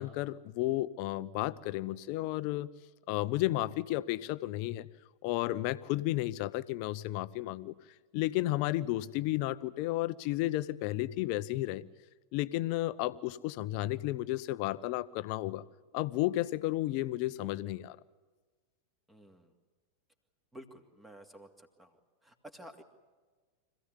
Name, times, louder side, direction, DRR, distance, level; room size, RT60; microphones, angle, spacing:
voice 1, 0.0-2.7 3.1-4.9 5.2-7.7 8.1-11.9 12.3-15.6 15.9-18.0, left 16 dB, 45° left, 15 dB, 0.8 m, -32 dB
voice 2, 19.1-19.5 20.5-22.8, right 1 dB, 10° right, 6 dB, 2.6 m, -52 dB
25.5 x 16.0 x 9.8 m, 1.4 s
figure-of-eight pair, 90°, 0 cm